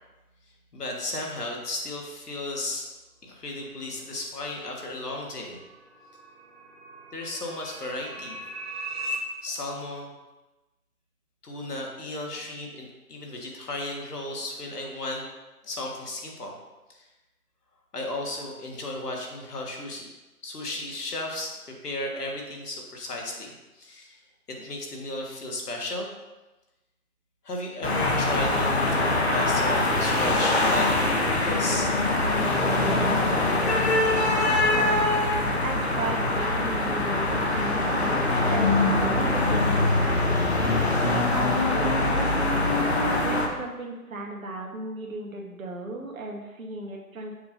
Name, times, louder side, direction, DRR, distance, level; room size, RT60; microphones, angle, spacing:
voice 1, 0.7-2.8 3.2-5.6 7.1-8.4 9.4-10.1 11.4-15.2 15.6-16.6 16.9-17.1 17.9-20.1 20.4-24.2 24.5-26.1 27.4-31.9, left 2 dB, 85° left, 0 dB, 1.6 m, -34 dB
sound 1, 4.9-9.2, right 1 dB, 45° right, 0.7 m, -39 dB
sound 2, 27.8-43.5, left 2 dB, 45° left, 0.8 m, -23 dB
voice 2, 34.4-35.1 35.6-42.6 43.2-47.3, right 2 dB, 60° right, 0 dB, 1.2 m, -36 dB
6.8 x 2.6 x 5.2 m, 1.1 s
hypercardioid pair, 175°, 45 cm